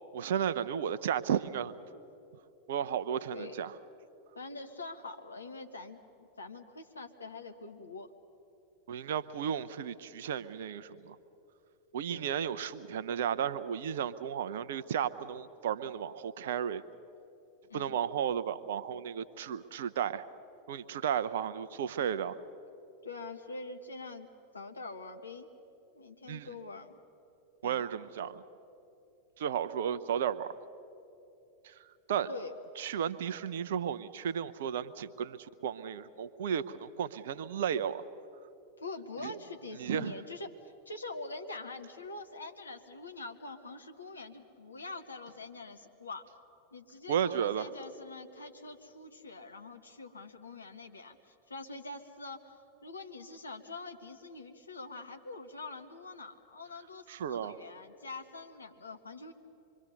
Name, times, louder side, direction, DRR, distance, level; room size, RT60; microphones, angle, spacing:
voice 1, 0.1-1.7 2.7-3.7 8.9-11.2 11.9-16.8 17.7-20.2 20.7-22.4 26.3-26.5 27.6-28.4 29.4-30.5 31.6-31.7 32.1-32.3 32.8-35.4 35.6-38.0 39.2-39.3 39.8-40.1 47.1-47.7 57.1-57.6, right 8 dB, 60° right, 14 dB, 0.7 m, -33 dB
voice 2, 4.3-8.1 12.1-12.3 17.7-18.0 23.0-25.5 25.9-27.0 27.6-28.0 32.3-32.5 38.8-46.3 46.7-52.6 52.8-59.3, left 3 dB, 75° left, 6 dB, 1.4 m, -45 dB
26.0 x 23.5 x 6.7 m, 2.8 s
figure-of-eight pair, 90°, 0 cm